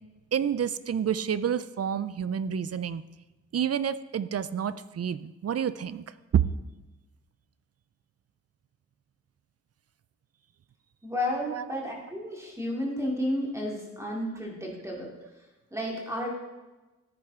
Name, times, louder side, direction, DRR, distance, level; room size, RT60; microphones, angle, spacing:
voice 1, 0.3-3.0 3.5-6.0 11.5-11.6, right 8 dB, 55° right, 15 dB, 0.5 m, -29 dB
voice 2, 11.0-15.1 15.7-16.3, left 1 dB, 10° right, -2 dB, 2.7 m, -32 dB
14.5 x 9.6 x 3.7 m, 1.1 s
wide cardioid pair, 145°, 30 cm